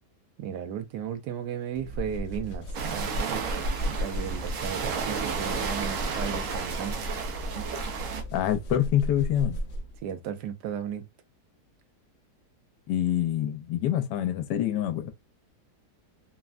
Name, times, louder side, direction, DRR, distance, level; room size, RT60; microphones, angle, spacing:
voice 1, 0.4-3.4 4.0-7.0 10.0-11.1, right 8 dB, 80° right, 1.2 m, -35 dB
sound 1, 1.8-10.0, equal, 65° left, 0.8 m, -35 dB
sound 2, 2.7-8.2, right 6 dB, 65° right, 0.8 m, -33 dB
voice 2, 8.3-9.6 12.9-15.1, left 11 dB, 85° left, 1.2 m, -26 dB
3.3 x 2.1 x 2.3 m
omnidirectional pair, 1.8 m